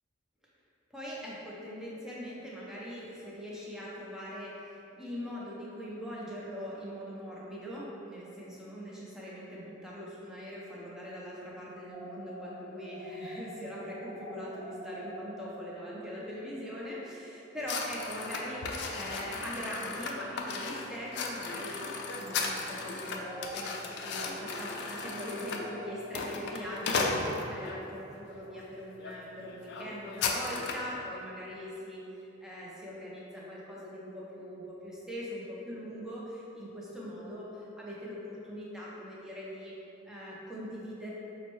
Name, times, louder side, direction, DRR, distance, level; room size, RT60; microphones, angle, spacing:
voice 1, 0.9-21.8 22.2-39.7 40.1-41.1, equal, 5° right, -7 dB, 0.5 m, -41 dB
sound 1, 11.9-17.3 17.5-17.7 18.0-20.3 21.0-22.8 23.1-27.1, equal, 45° right, 0.9 m, -49 dB
sound 2, 17.7-27.8 28.4-28.6 29.0-29.2 29.4-30.9, left 4 dB, 55° left, 0.3 m, -36 dB
5.2 x 2.1 x 3.0 m, 2.9 s
head